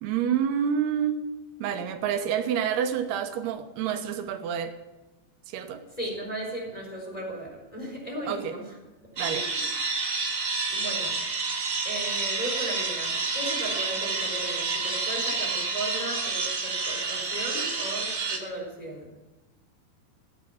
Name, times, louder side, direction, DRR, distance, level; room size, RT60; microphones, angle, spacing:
voice 1, 0.0-1.3 1.6-4.7 5.5-5.8 8.3-8.5 9.2-9.5, right 8 dB, 90° right, 7 dB, 3.1 m, -28 dB
voice 2, 6.0-8.8 9.1-9.7 10.7-11.3 11.8-19.1, right 1 dB, 10° left, -1 dB, 3.9 m, -36 dB
sound 1, 9.2-18.4, right 4 dB, 50° right, 0.9 m, -29 dB
15.0 x 9.6 x 7.2 m, 1.1 s
omnidirectional pair, 4.4 m